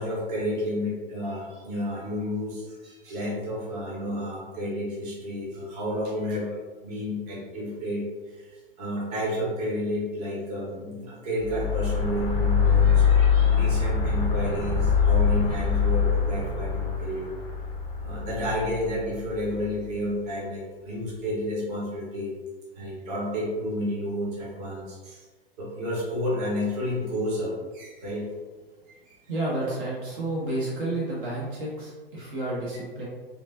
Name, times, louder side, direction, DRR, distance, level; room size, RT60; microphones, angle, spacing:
voice 1, 0.0-6.6 6.8-17.2 18.0-22.3 22.7-25.2 25.6-28.3 28.9-29.0, equal, 40° right, -4 dB, 1.4 m, -31 dB
sound 1, 11.4-19.8, left 6 dB, 15° left, 0.6 m, -23 dB
voice 2, 29.3-33.0, right 2 dB, 60° right, -6 dB, 1.3 m, -30 dB
5.0 x 2.7 x 2.8 m, 1.3 s
figure-of-eight pair, 100°, 30 cm